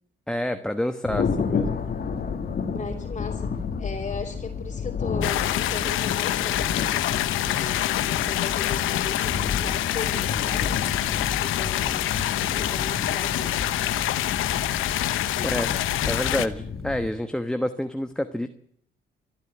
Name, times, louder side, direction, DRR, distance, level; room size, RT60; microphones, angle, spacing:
voice 1, 0.3-1.8 15.4-15.7 16.1-18.5, left 1 dB, 5° left, 7 dB, 1.2 m, -28 dB
Thunder, 1.0-17.1, left 5 dB, 50° left, 2.4 m, -31 dB
voice 2, 2.7-10.8 11.4-12.2 12.4-14.0 15.3-15.7, left 4 dB, 35° left, -2 dB, 3.2 m, -37 dB
sound 1, 5.2-16.5, left 14 dB, 85° left, 1.0 m, -26 dB
25.0 x 12.0 x 9.1 m, 0.66 s
cardioid pair, 90°, 20 cm